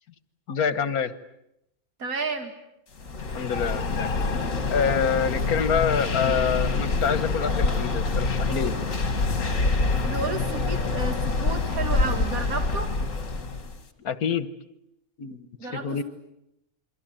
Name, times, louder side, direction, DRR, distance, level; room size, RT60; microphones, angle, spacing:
voice 1, 0.5-1.1 3.3-4.1 4.7-8.8 14.0-14.5 15.2-15.5 15.7-16.0, left 6 dB, 85° left, 14 dB, 1.8 m, -26 dB
voice 2, 2.0-2.5 10.0-12.9 15.6-15.9, right 3 dB, 75° right, 5 dB, 2.7 m, -31 dB
sound 1, 3.0-13.8, left 3 dB, 60° left, 2.6 m, -26 dB
28.0 x 23.5 x 9.0 m, 0.83 s
omnidirectional pair, 1.5 m